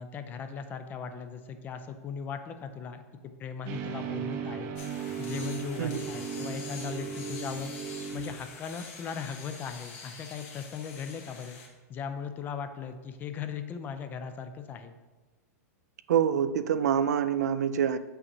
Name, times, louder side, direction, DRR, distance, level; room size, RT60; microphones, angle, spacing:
voice 1, 0.0-3.0 3.4-4.7 5.2-7.7 8.1-11.6 11.9-14.9, left 6 dB, 20° left, 8 dB, 0.4 m, -38 dB
sound 1, 3.7-8.6, right 7 dB, 35° right, 0.6 m, -36 dB
sound 2, 4.8-11.7, left 4 dB, 55° left, 1.4 m, -46 dB
voice 2, 16.1-18.0, right 8 dB, 85° right, 11 dB, 0.4 m, -26 dB
7.1 x 5.7 x 2.7 m, 1.3 s
hypercardioid pair, 145°, 9 cm